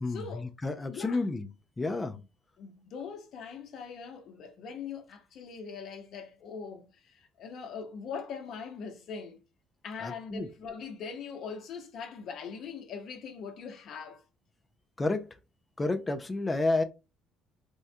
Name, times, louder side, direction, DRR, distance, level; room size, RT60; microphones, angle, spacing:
voice 1, 0.1-0.5 0.9-1.3 2.6-9.4 9.8-14.2, left 6 dB, 50° left, 0.8 m, -41 dB
voice 2, 0.6-1.4 1.8-2.2 10.0-10.5 15.0-15.2 15.8-16.8, left 2 dB, 15° left, 0.3 m, -29 dB
3.5 x 2.1 x 2.7 m
cardioid pair, 150°, 0 cm